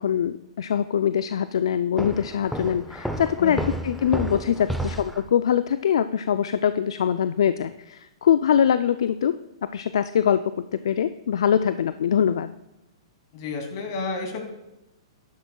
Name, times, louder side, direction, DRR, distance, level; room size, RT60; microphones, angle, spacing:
voice 1, 0.0-12.5, left 9 dB, 70° left, 12 dB, 0.4 m, -23 dB
Walk footsteps, 2.0-5.3, right 1 dB, ahead, 0.7 m, -31 dB
voice 2, 13.3-14.4, left 3 dB, 50° left, 3 dB, 2.6 m, -31 dB
13.5 x 11.0 x 2.3 m, 0.95 s
hypercardioid pair, 115°, 3 cm